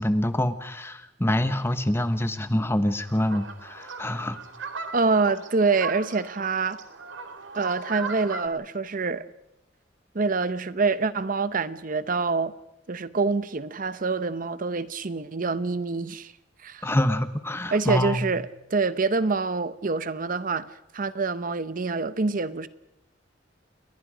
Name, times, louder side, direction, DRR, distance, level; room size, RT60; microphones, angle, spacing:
voice 1, 0.0-4.4 16.8-18.3, left 1 dB, 15° left, 1.2 m, -26 dB
sound 1, 3.1-8.5, right 5 dB, 85° right, 2.4 m, -38 dB
voice 2, 4.9-6.8 7.5-9.3 10.1-12.5 12.9-16.3 16.6-16.9 17.7-22.7, right 4 dB, 45° right, 0.8 m, -26 dB
29.5 x 21.5 x 5.1 m
head